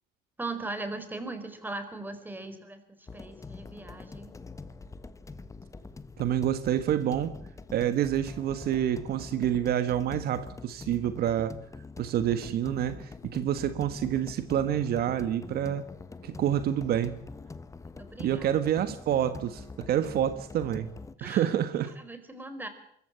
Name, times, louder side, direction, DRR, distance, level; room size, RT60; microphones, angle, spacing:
voice 1, 0.4-4.3 18.0-18.5 20.0-20.1 21.2-21.5 22.0-22.7, right 2 dB, 10° right, 9 dB, 4.5 m, -39 dB
sound 1, 3.1-21.2, left 3 dB, 20° left, 1.3 m, -44 dB
voice 2, 6.2-7.3 7.7-11.6 12.0-15.8 16.2-17.2 18.2-20.9 21.2-21.9, right 10 dB, 65° right, 11 dB, 1.5 m, -28 dB
24.0 x 15.0 x 8.8 m, 0.70 s
cardioid pair, 110°, 17 cm